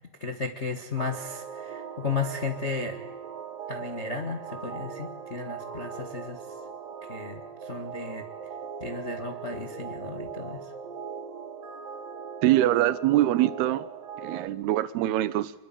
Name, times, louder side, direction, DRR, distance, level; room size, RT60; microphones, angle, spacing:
voice 1, 0.2-3.0 3.7-6.4 7.1-8.3 8.8-10.7, left 4 dB, 90° left, 0.6 m, -34 dB
sound 1, 1.0-14.5, right 6 dB, 65° right, 4.0 m, -39 dB
voice 2, 12.4-13.9 14.2-15.5, right 14 dB, 85° right, 3.0 m, -23 dB
25.5 x 22.5 x 9.0 m
omnidirectional pair, 4.4 m